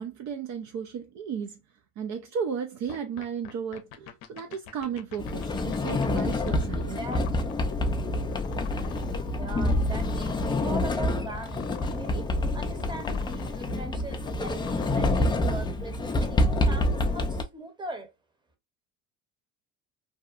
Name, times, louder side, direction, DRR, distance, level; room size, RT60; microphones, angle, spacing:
voice 1, 0.0-1.6 2.0-5.4 5.8-7.0, right 7 dB, 55° right, 0.5 m, -34 dB
sound 1, 2.9-15.0, left 10 dB, 75° left, 0.6 m, -44 dB
Sliding door, 5.2-17.4, left 1 dB, 15° left, 0.3 m, -27 dB
voice 2, 6.7-7.3 9.2-18.1, right 2 dB, 15° right, 0.8 m, -41 dB
2.7 x 2.2 x 2.3 m
supercardioid pair, 85°, 36 cm